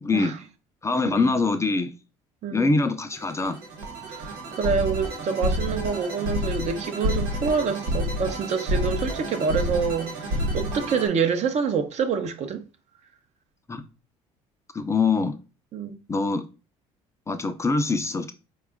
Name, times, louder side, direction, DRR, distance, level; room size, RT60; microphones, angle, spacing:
voice 1, 0.0-0.3 0.8-1.9 2.5-3.6 13.7-13.8 14.7-15.4 16.1-16.4 17.3-18.3, left 3 dB, 20° left, 0.5 m, -24 dB
sound 1, 3.1-11.1, equal, 90° right, 1.1 m, -29 dB
voice 2, 4.1-12.6 15.7-16.0, right 6 dB, 50° right, 0.7 m, -27 dB
4.3 x 2.4 x 3.4 m
supercardioid pair, 75°, 15 cm